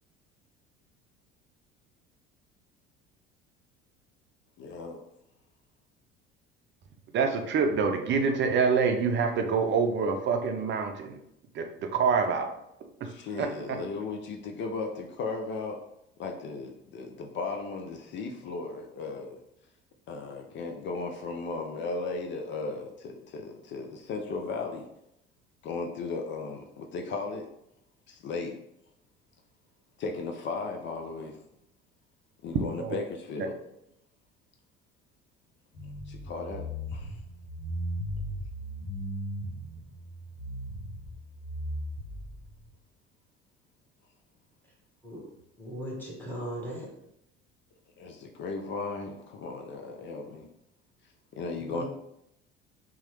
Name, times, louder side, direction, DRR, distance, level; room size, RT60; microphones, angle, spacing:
voice 1, 4.6-5.0 13.0-15.8 16.2-19.4 20.1-24.9 25.6-27.5 28.1-28.6 30.0-31.4 32.4-33.6 36.1-36.7 36.9-37.2 48.0-50.5 51.3-51.8, left 4 dB, 40° left, 2 dB, 0.4 m, -36 dB
voice 2, 7.1-11.2 11.5-12.5 13.4-13.8 32.8-32.9, right 5 dB, 35° right, 5 dB, 0.5 m, -26 dB
sound 1, 35.8-42.7, equal, 60° left, 0.9 m, -37 dB
voice 3, 45.6-46.9 51.6-51.8, equal, 5° left, -4 dB, 1.2 m, -38 dB
2.9 x 2.3 x 3.0 m, 0.79 s
hypercardioid pair, 60°, 31 cm